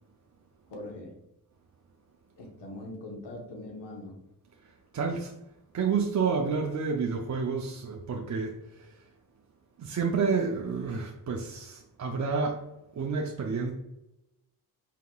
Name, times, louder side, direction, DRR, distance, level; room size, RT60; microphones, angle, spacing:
voice 1, 0.7-1.2 2.4-4.2, left 1 dB, 80° left, 1 dB, 1.1 m, -42 dB
voice 2, 4.9-5.3 5.7-8.6 9.8-12.6 13.0-13.7, right 5 dB, 45° right, 1 dB, 0.6 m, -29 dB
4.6 x 3.6 x 2.3 m, 0.90 s
cardioid pair, 60°, 41 cm